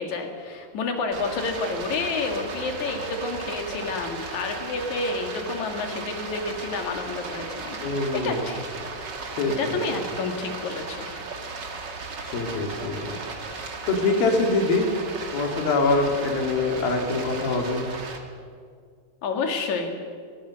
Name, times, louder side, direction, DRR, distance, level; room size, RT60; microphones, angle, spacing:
voice 1, 0.0-8.7 9.6-11.1 19.2-19.9, left 3 dB, 55° left, 4 dB, 3.4 m, -29 dB
Stream, 1.1-18.2, right 3 dB, 40° right, 1.8 m, -36 dB
voice 2, 7.8-8.4 9.4-9.8 12.3-13.2 13.9-14.9 15.3-17.8, left 3 dB, 85° left, 2 dB, 4.3 m, -24 dB
21.5 x 19.5 x 6.5 m, 2.1 s
omnidirectional pair, 4.1 m